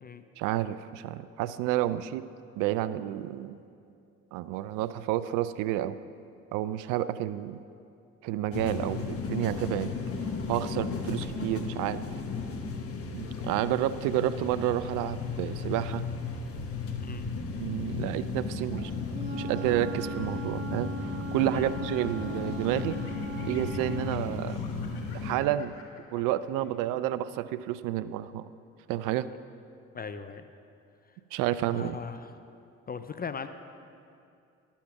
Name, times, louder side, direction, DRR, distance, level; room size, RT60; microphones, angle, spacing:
voice 1, 0.4-2.2 2.6-3.6 4.3-6.0 6.5-7.6 8.2-12.1 13.1-16.0 17.6-18.9 19.3-23.0 23.5-24.6 25.1-25.7 26.1-28.5 28.9-29.3 31.3-32.0, right 13 dB, 70° right, 15 dB, 0.5 m, -30 dB
sound 1, 8.5-25.4, left 4 dB, 45° left, 1.2 m, -35 dB
Laughter, 18.7-20.0 20.6-21.7 22.1-27.1, left 5 dB, 80° left, 1.5 m, -52 dB
Wind instrument woodwind instrument, 19.0-24.1, equal, 35° right, 1.9 m, -39 dB
voice 2, 29.9-30.4 31.7-32.3 32.9-33.5, left 6 dB, 30° left, 10 dB, 0.5 m, -38 dB
11.5 x 7.1 x 5.8 m, 2.5 s
hypercardioid pair, 60°, 33 cm